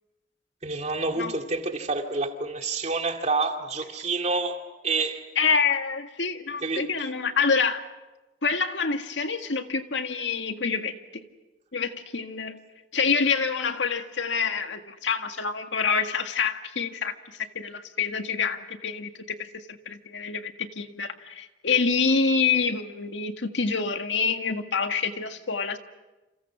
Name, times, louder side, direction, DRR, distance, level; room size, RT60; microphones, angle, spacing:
voice 1, 0.6-5.3 6.6-6.9, right 3 dB, 40° right, 2.3 m, -28 dB
voice 2, 5.4-7.8 8.4-11.2 11.7-12.6 12.9-19.1 19.4-25.8, left 5 dB, 85° left, 1.8 m, -27 dB
30.0 x 28.0 x 6.2 m
head